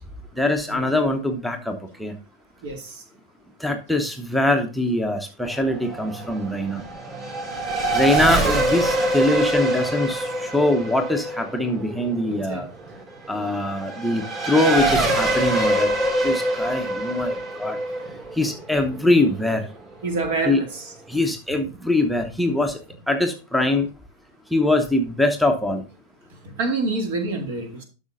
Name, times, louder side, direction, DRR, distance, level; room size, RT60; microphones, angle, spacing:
voice 1, 0.4-2.1 3.6-6.8 7.9-12.7 13.3-15.9 16.2-17.8 18.3-19.7 20.4-20.6 21.1-22.8 23.1-23.9 24.5-25.8, left 1 dB, ahead, 3 dB, 0.9 m, -23 dB
voice 2, 2.6-3.0 7.9-8.0 12.3-12.6 20.0-20.9 26.4-27.8, right 3 dB, 50° right, 4 dB, 2.3 m, -27 dB
Race car auto racing / Accelerating revving vroom, 5.4-19.5, right 1 dB, 30° right, 3.3 m, -25 dB
12.0 x 6.3 x 2.6 m, 0.33 s
figure-of-eight pair, 90°, 0 cm